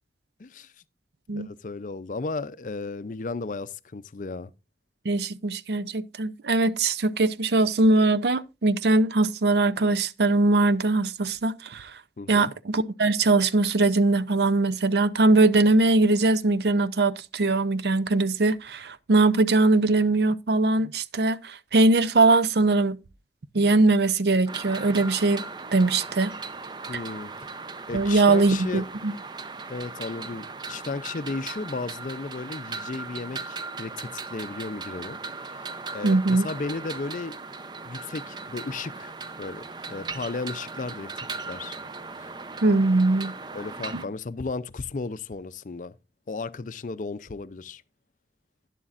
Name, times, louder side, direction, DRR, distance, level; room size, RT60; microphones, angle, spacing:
voice 1, 0.4-0.7 1.3-4.5 12.2-12.5 26.9-27.5 27.9-28.9 29.7-35.7 35.9-37.4 37.8-41.8 42.2-42.3 43.5-46.0 46.3-47.8, left 3 dB, 45° left, 0.5 m, -35 dB
voice 2, 5.0-11.9 12.3-23.0 23.5-25.4 25.7-26.3 27.9-29.1 36.0-36.5 42.6-43.3, right 2 dB, 70° right, 0.6 m, -21 dB
sound 1, 24.5-44.1, right 4 dB, 25° right, 0.5 m, -38 dB
11.0 x 11.0 x 2.5 m
head